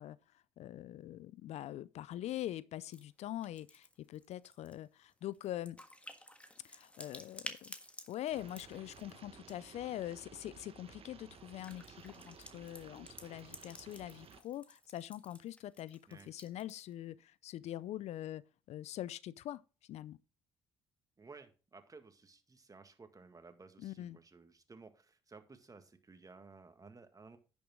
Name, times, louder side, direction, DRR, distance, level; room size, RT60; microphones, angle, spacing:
voice 1, 0.0-5.8 6.6-7.7 8.1-18.4 18.7-20.2 23.8-24.2, left 13 dB, 65° left, 0.4 m, -44 dB
sound 1, 2.9-3.0 3.3-9.7 10.2-10.5 11.3-16.9, left 1 dB, 10° left, 1.6 m, -53 dB
sound 2, 8.3-14.4, right 7 dB, 50° right, 1.2 m, -56 dB
voice 2, 21.2-27.4, right 4 dB, 30° right, 1.8 m, -56 dB
10.5 x 7.1 x 3.7 m
hypercardioid pair, 50°, 12 cm